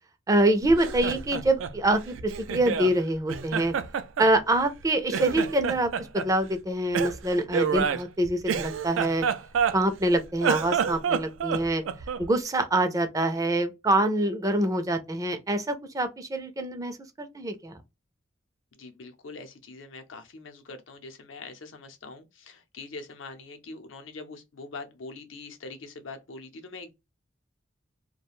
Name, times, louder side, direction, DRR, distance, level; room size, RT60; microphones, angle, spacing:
voice 1, 0.3-3.7 4.2-9.3 9.7-11.8 12.2-17.8, right 1 dB, 20° right, 0.4 m, -25 dB
Laughter, 0.7-2.9 3.3-4.8 5.1-6.3 6.9-10.0 10.3-12.3, right 7 dB, 85° right, 0.3 m, -29 dB
voice 2, 18.7-26.9, left 3 dB, 80° left, 0.6 m, -43 dB
2.4 x 2.2 x 3.0 m
head